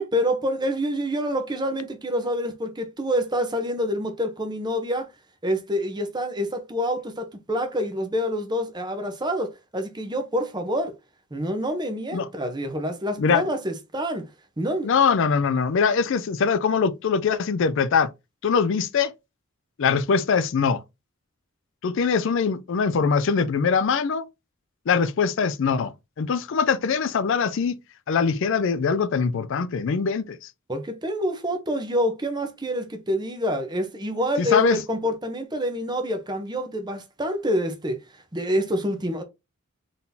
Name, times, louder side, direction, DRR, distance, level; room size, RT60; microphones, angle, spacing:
voice 1, 0.0-5.1 5.4-10.9 11.3-14.3 14.6-14.9 30.7-39.2, equal, 20° right, 0.8 m, -27 dB
voice 2, 14.8-18.1 18.4-19.1 19.8-20.8 21.8-24.3 24.9-27.8 28.1-30.5 34.4-34.8, left 5 dB, 60° left, 0.4 m, -22 dB
4.0 x 3.7 x 2.7 m
head